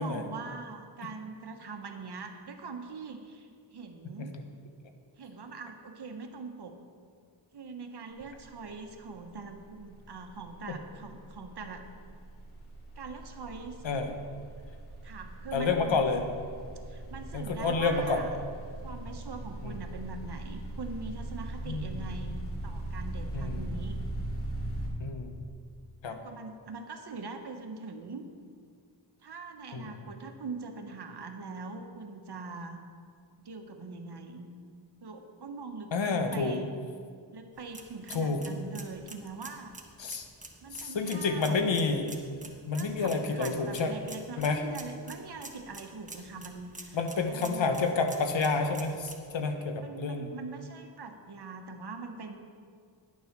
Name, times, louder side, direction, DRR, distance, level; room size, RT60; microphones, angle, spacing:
voice 1, 0.0-4.3 5.2-6.8 7.5-11.8 13.0-13.8 15.0-16.0 16.9-18.3 18.8-22.4 22.6-24.0 26.1-28.3 29.2-32.8 33.4-34.5 35.0-36.7 37.3-39.7 40.6-41.6 42.7-47.8 49.8-52.4, right 4 dB, 60° right, 5 dB, 1.2 m, -42 dB
sound 1, 8.2-8.5 8.7-24.9, right 1 dB, 30° left, 2.3 m, -40 dB
voice 2, 13.8-14.1 15.5-16.2 17.3-18.2 19.6-19.7 21.7-22.0 23.3-23.6 25.0-25.3 26.0-26.2 29.7-29.9 35.9-36.6 38.1-38.4 40.0-40.2 40.7-42.0 42.7-43.9 44.4-44.6 46.9-50.3, left 4 dB, 80° left, 6 dB, 1.1 m, -29 dB
sound 2, 37.5-49.2, right 2 dB, 15° right, 1.2 m, -49 dB
10.5 x 7.1 x 6.0 m, 2.1 s
cardioid pair, 65°, 44 cm